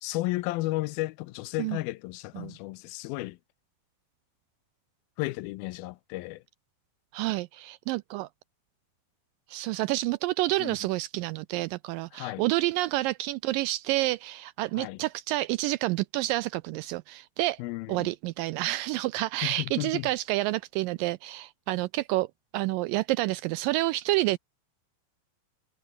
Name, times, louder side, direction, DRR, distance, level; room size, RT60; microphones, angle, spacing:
voice 1, 0.0-3.4 5.2-6.4 10.6-10.8 12.1-12.4 14.8-15.0 17.6-18.1 19.4-20.1, left 20 dB, 85° left, 2.4 m, -33 dB
voice 2, 7.1-8.3 9.5-17.6 17.9-22.3 22.5-24.4, right 18 dB, 85° right, 2.0 m, -29 dB
omnidirectional pair, 4.3 m